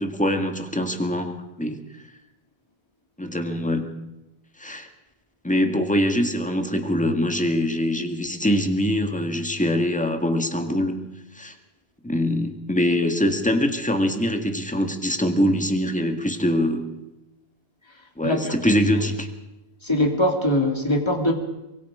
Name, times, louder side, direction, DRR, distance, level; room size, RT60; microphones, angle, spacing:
voice 1, 0.0-1.8 3.2-3.9 4.6-4.9 5.4-11.1 11.3-11.5 12.0-16.9 18.2-19.3, equal, 5° left, 5 dB, 1.8 m, -23 dB
voice 2, 18.2-18.5 18.9-19.0 19.8-21.3, left 1 dB, 25° left, 2 dB, 2.8 m, -22 dB
24.0 x 22.5 x 5.0 m, 0.97 s
omnidirectional pair, 1.1 m